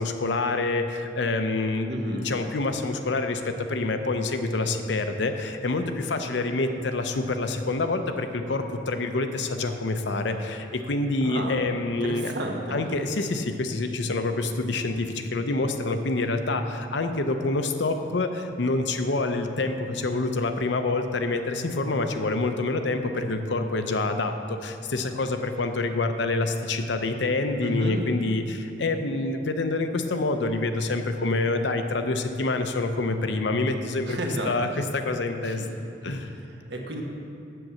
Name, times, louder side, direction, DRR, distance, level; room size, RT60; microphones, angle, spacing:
voice 1, 0.0-12.3 12.7-34.2 34.5-35.7 36.0-36.3, left 2 dB, 70° left, 7 dB, 0.7 m, -27 dB
voice 2, 1.9-2.3 11.2-11.6 11.9-12.8 27.6-28.0 34.1-34.5 35.4-35.7 36.0-37.0, right 1 dB, 65° right, 1 dB, 1.3 m, -32 dB
7.8 x 6.9 x 7.5 m, 2.6 s
head